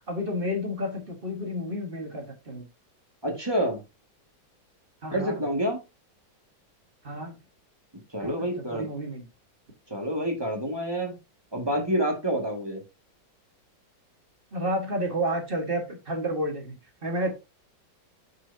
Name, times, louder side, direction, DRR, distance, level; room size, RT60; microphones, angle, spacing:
voice 1, 0.1-2.6 5.0-5.4 7.0-7.4 8.2-9.2 14.5-17.3, equal, 30° right, 1.5 m, -31 dB
voice 2, 3.2-3.8 5.1-5.8 8.1-8.9 9.9-11.1 11.5-12.8, equal, 15° right, 1.6 m, -28 dB
6.4 x 6.1 x 2.7 m
omnidirectional pair, 2.1 m